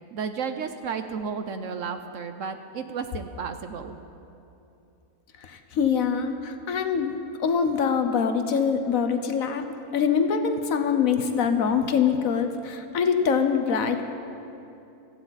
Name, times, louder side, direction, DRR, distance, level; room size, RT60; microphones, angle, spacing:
voice 1, 0.1-4.0, right 6 dB, 65° right, 8 dB, 0.9 m, -33 dB
voice 2, 5.4-9.6 9.9-14.1, left 6 dB, 65° left, 7 dB, 1.2 m, -24 dB
17.0 x 14.5 x 4.0 m, 2.8 s
omnidirectional pair, 1.6 m